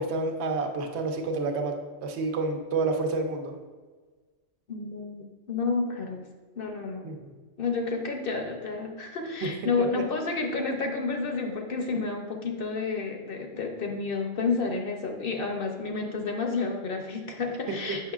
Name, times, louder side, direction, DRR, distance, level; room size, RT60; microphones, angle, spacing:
voice 1, 0.0-1.8 2.0-3.5 7.0-7.3 9.4-9.5 17.9-18.1, right 3 dB, 65° right, 4 dB, 0.9 m, -29 dB
voice 2, 4.7-6.2 6.6-7.0 7.6-18.1, left 4 dB, 55° left, 3 dB, 0.7 m, -30 dB
7.4 x 6.0 x 2.4 m, 1.4 s
omnidirectional pair, 1.3 m